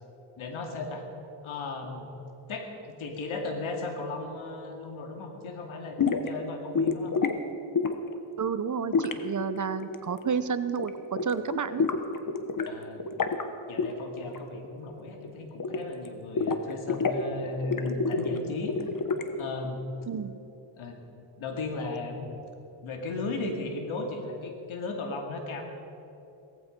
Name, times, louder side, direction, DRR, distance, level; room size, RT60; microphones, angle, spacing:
voice 1, 0.4-1.1 1.4-2.1 2.5-7.1 12.6-13.0 13.7-18.8 19.4-19.8 20.8-21.0 21.4-22.5 22.8-25.6, left 3 dB, 85° left, 3 dB, 2.5 m, -36 dB
sound 1, 6.0-6.3 6.7-7.4 7.7-8.1 8.9-10.4 10.7-10.9 11.2-12.7 13.0-13.4 13.8-13.9 14.2-14.7 14.9-16.1 16.4-17.2 17.6-19.4, left 5 dB, 45° left, 1.3 m, -28 dB
voice 2, 8.4-11.8 20.1-20.3, right 6 dB, 40° right, 13 dB, 0.8 m, -30 dB
17.5 x 15.0 x 5.3 m, 2.9 s
cardioid pair, 95°, 47 cm